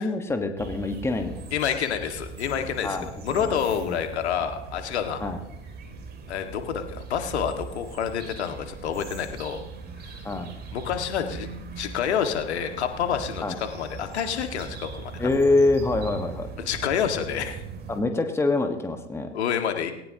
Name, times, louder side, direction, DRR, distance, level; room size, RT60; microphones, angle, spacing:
voice 1, 0.0-1.4 2.8-3.5 3.8-4.0 5.2-5.4 10.2-10.5 13.4-13.5 15.2-16.5 17.9-19.3, left 2 dB, 5° left, 6 dB, 1.4 m, -25 dB
sound 1, 0.6-18.0, right 5 dB, 25° right, 2.8 m, -40 dB
voice 2, 1.5-5.2 6.3-9.6 10.7-11.5 11.8-15.1 16.7-17.6 19.3-19.9, left 8 dB, 65° left, 6 dB, 1.9 m, -28 dB
19.5 x 18.0 x 2.9 m, 0.89 s
figure-of-eight pair, 90°, 35 cm